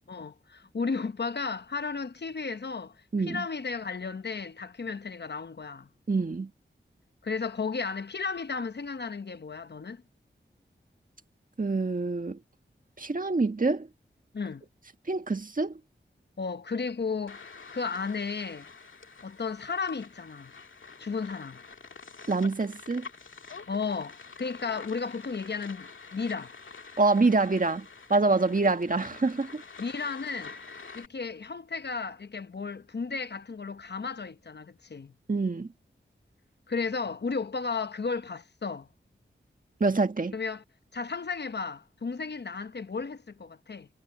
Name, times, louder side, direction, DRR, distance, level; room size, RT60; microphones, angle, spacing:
voice 1, 0.1-3.0 3.3-5.9 7.2-10.0 14.3-14.6 16.4-17.4 17.7-18.7 19.2-20.5 21.0-21.6 23.7-26.5 29.8-30.5 30.9-35.1 36.7-38.9 40.3-40.6 40.9-43.9, left 4 dB, 60° left, 0.9 m, -34 dB
voice 2, 3.1-3.4 6.1-6.5 11.6-12.4 13.0-13.9 15.1-15.7 22.3-23.0 27.0-29.6 35.3-35.7 39.8-40.3, right 3 dB, 45° right, 1.6 m, -26 dB
sound 1, 17.3-31.1, left 4 dB, 80° left, 2.0 m, -47 dB
wide cardioid pair, 65°, 20 cm